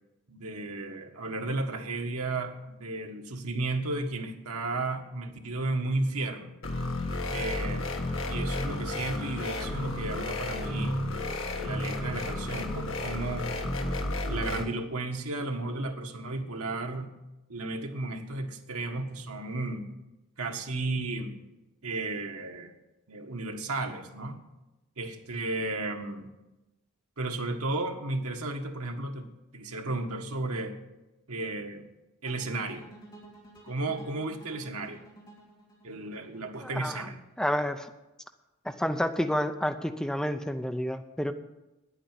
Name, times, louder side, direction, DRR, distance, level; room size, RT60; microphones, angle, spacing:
voice 1, 0.3-6.5 7.3-7.8 8.3-11.0 11.6-13.5 14.3-17.1 17.5-19.9 20.4-21.3 21.8-22.7 23.1-24.4 25.0-26.3 27.2-29.3 29.5-30.8 31.3-31.8 32.2-32.8 33.6-35.0 35.8-37.2, right 2 dB, 85° right, 3 dB, 1.6 m, -33 dB
sound 1, 6.6-14.6, left 2 dB, 60° left, 1.6 m, -32 dB
sound 2, 32.3-37.4, right 2 dB, 20° left, 3.3 m, -52 dB
voice 2, 36.6-37.1 37.4-37.9 38.7-41.3, equal, 5° left, 7 dB, 0.5 m, -29 dB
9.8 x 9.0 x 9.0 m, 1.0 s
head